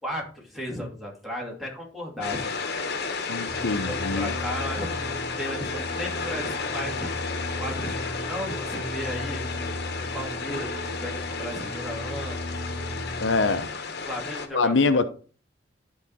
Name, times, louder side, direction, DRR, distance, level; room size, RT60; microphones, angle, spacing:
voice 1, 0.0-2.6 3.6-7.1 7.6-9.4 10.1-12.7 13.4-13.5 14.1-14.7, left 1 dB, ahead, 2.5 m, -35 dB
sound 1, 2.2-14.5, left 4 dB, 55° left, 1.2 m, -33 dB
voice 2, 3.3-4.3 13.2-13.7 14.5-15.0, left 3 dB, 75° left, 0.7 m, -24 dB
sound 2, 3.5-13.6, left 1 dB, 30° left, 1.4 m, -36 dB
11.5 x 4.8 x 4.1 m
head